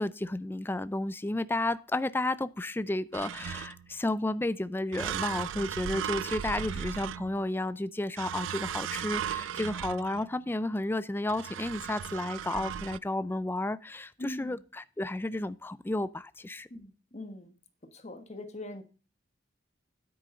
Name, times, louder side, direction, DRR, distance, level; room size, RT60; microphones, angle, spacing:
voice 1, 0.0-16.7, left 2 dB, 10° left, 0.4 m, -32 dB
sound 1, 3.1-4.0 4.9-7.6 8.2-10.4 11.3-13.0, right 9 dB, 90° right, 0.4 m, -36 dB
voice 2, 14.2-14.6 16.7-17.6 17.9-18.8, left 1 dB, 35° left, 1.4 m, -42 dB
9.9 x 8.7 x 3.8 m
head